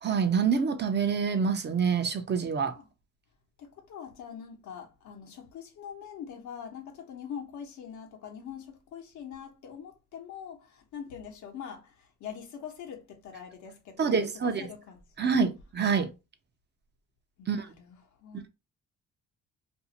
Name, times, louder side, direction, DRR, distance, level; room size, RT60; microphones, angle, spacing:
voice 1, 0.0-2.8 14.0-14.6 15.2-16.1 17.5-17.7, right 6 dB, 35° right, 0.5 m, -26 dB
voice 2, 3.6-15.3 17.4-18.5, left 8 dB, 75° left, 0.9 m, -44 dB
2.6 x 2.4 x 2.8 m
cardioid pair, 90°, 30 cm